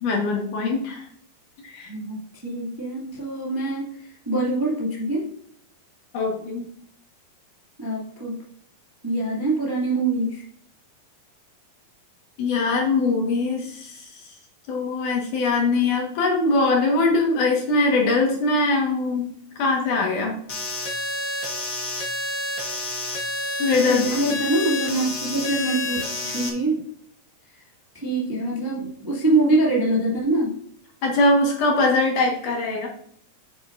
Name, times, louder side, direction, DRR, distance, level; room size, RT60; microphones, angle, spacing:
voice 1, 0.0-1.1 1.6-1.9 6.1-6.6 12.4-14.2 14.7-20.4 23.6-24.0 31.0-32.9, left 3 dB, 65° left, 0 dB, 2.9 m, -22 dB
voice 2, 1.9-5.3 7.8-8.4 9.0-10.4 23.7-26.8 27.9-30.5, right 2 dB, 10° right, -5 dB, 1.6 m, -24 dB
sound 1, 20.5-26.5, left 2 dB, 80° left, 0.7 m, -29 dB
8.7 x 8.6 x 2.6 m, 0.64 s
omnidirectional pair, 4.2 m